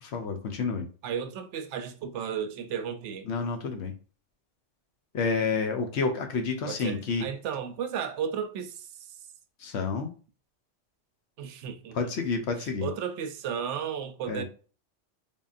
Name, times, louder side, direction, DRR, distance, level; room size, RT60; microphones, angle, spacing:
voice 1, 0.0-0.9 3.3-3.9 5.1-7.2 9.6-10.1 11.9-12.9 14.3-14.4, left 4 dB, 70° left, 0.9 m, -29 dB
voice 2, 1.0-3.3 6.7-8.9 11.4-12.0 12.6-14.4, right 8 dB, 75° right, 0.9 m, -34 dB
3.7 x 3.5 x 2.4 m
omnidirectional pair, 1.2 m